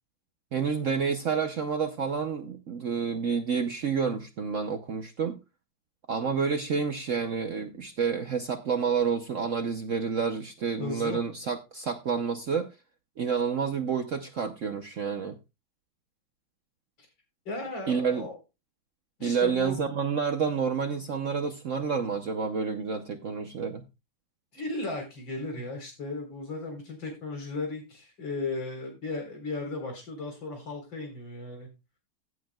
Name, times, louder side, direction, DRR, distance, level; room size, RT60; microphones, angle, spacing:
voice 1, 0.5-5.4 6.1-12.7 13.2-15.4 17.9-18.3 19.2-23.8, right 6 dB, 60° right, 7 dB, 0.8 m, -29 dB
voice 2, 10.8-11.2 17.5-18.4 19.2-19.8 24.5-31.7, left 2 dB, 65° left, 3 dB, 4.7 m, -35 dB
16.0 x 8.3 x 2.3 m, 0.26 s
omnidirectional pair, 2.2 m